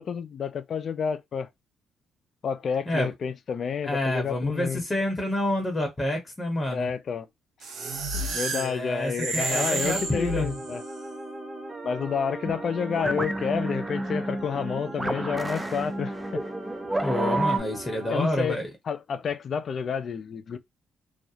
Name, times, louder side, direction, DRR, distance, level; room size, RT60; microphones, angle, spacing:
voice 1, 0.0-1.5 2.4-4.8 6.7-7.3 8.3-10.8 11.8-16.4 18.1-18.6 18.9-20.6, left 6 dB, 55° left, 0.4 m, -30 dB
voice 2, 3.8-6.9 8.5-10.6 17.0-18.7, left 1 dB, 25° left, 0.8 m, -28 dB
sound 1, 7.6-10.9, right 3 dB, 80° right, 0.7 m, -31 dB
sound 2, 9.5-18.2, right 2 dB, 35° right, 1.0 m, -39 dB
sound 3, 12.4-17.6, right 1 dB, 15° right, 0.4 m, -30 dB
2.4 x 2.0 x 2.7 m
cardioid pair, 90°, 0 cm